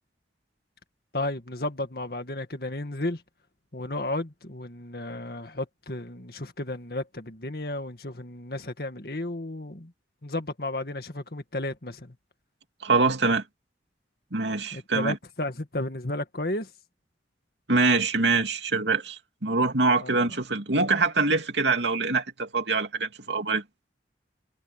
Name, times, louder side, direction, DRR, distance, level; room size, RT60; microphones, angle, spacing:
voice 1, 1.1-3.2 3.7-9.9 10.2-12.2 14.7-16.7 20.0-20.3, left 1 dB, 55° left, 2.1 m, -33 dB
voice 2, 12.8-13.4 14.3-15.2 17.7-23.6, right 3 dB, 75° right, 2.7 m, -24 dB
head